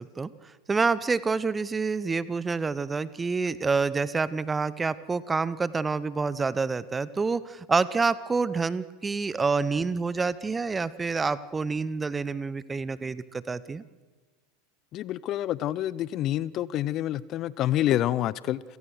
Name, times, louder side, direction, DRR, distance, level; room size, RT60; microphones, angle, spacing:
voice 1, 0.0-13.8, right 4 dB, 15° right, 18 dB, 0.9 m, -28 dB
voice 2, 14.9-18.6, left 13 dB, 40° left, 21 dB, 0.6 m, -27 dB
29.0 x 17.5 x 6.6 m, 1.3 s
figure-of-eight pair, 80°, 0 cm